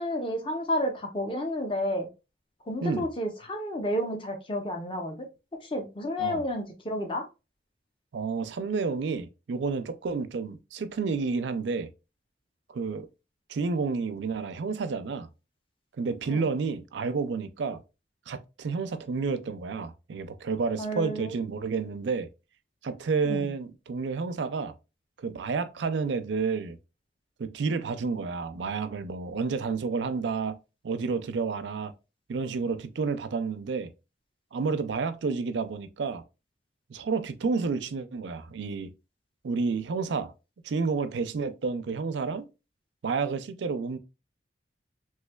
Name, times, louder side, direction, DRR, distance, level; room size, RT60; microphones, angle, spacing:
voice 1, 0.0-2.1 2.7-5.3 5.6-7.2 16.3-16.4 20.8-21.3 23.2-23.5, left 1 dB, 30° left, 0.6 m, -31 dB
voice 2, 8.1-11.9 12.7-13.1 13.5-15.3 16.0-17.8 18.3-22.3 22.8-24.7 25.2-26.8 27.4-30.6 30.8-31.9 32.3-33.9 34.5-36.2 36.9-38.9 39.4-40.3 40.6-42.5 43.0-44.0, right 4 dB, 80° right, 0.4 m, -30 dB
3.3 x 3.1 x 2.2 m
head